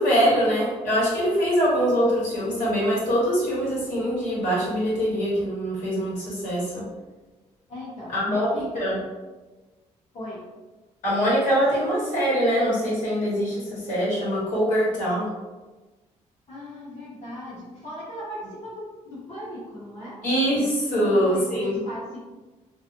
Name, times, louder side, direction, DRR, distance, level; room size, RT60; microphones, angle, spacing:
voice 1, 0.0-6.8 8.1-9.0 11.0-15.3 20.2-21.8, equal, 90° left, -7 dB, 1.3 m, -23 dB
voice 2, 7.7-8.8 10.1-10.5 16.5-20.2 20.9-22.2, left 1 dB, 60° left, -8 dB, 0.8 m, -38 dB
2.5 x 2.4 x 2.7 m, 1.2 s
cardioid pair, 115°, 13 cm